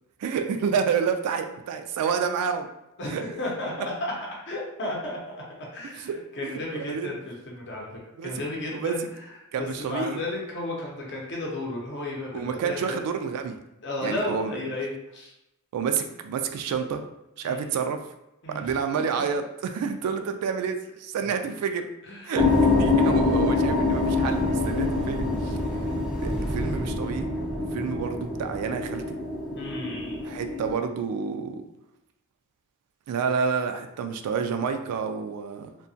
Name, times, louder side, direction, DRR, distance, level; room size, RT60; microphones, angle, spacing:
voice 1, 0.2-2.7 3.1-3.2 6.0-6.2 6.4-7.1 8.2-8.3 8.7-8.9 9.5-10.2 12.3-13.6 14.0-14.5 15.7-17.0 17.4-18.0 18.5-21.9 22.2-25.6 26.2-27.3 27.7-29.2 30.2-31.6 33.1-35.7, right 6 dB, 85° right, 11 dB, 0.3 m, -29 dB
voice 2, 3.0-4.1 4.5-5.2 5.7-7.9 8.2-9.0 9.6-13.0 13.8-15.3 17.4-17.7 18.4-18.6 18.9-19.0 22.0-22.4 29.6-30.2, left 1 dB, 50° left, -3 dB, 0.7 m, -33 dB
sound 1, 22.4-30.7, left 3 dB, 5° right, 0.4 m, -25 dB
2.8 x 2.2 x 2.6 m, 0.89 s
head